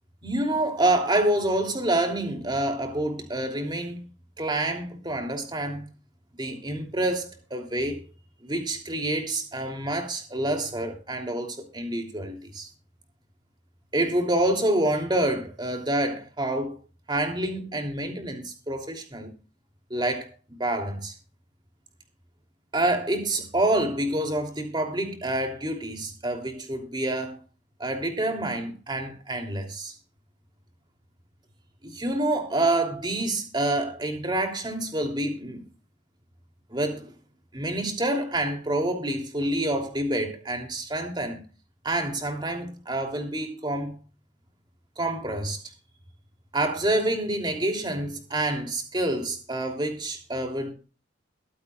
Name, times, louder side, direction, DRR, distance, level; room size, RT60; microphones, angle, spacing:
voice 1, 0.2-4.1 4.4-5.9 6.4-8.0 8.4-12.7 13.9-16.8 17.1-19.3 19.9-21.1 22.7-27.4 27.8-29.9 31.8-35.6 36.7-37.1 37.5-41.4 41.8-44.0 45.0-45.6 46.5-50.7, right 1 dB, 25° right, 3.0 m, -27 dB
22.5 x 8.5 x 2.4 m
head